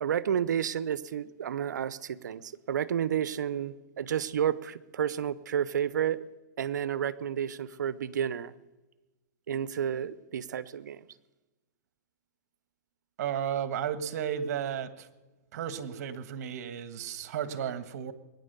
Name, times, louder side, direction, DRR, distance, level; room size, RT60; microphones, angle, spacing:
voice 1, 0.0-6.2 6.6-8.5 9.5-11.0, right 9 dB, 80° right, 17 dB, 0.8 m, -31 dB
voice 2, 13.2-15.1 15.5-18.1, right 9 dB, 60° right, 11 dB, 1.5 m, -33 dB
21.5 x 9.9 x 6.8 m, 1.1 s
hypercardioid pair, 135°, 10 cm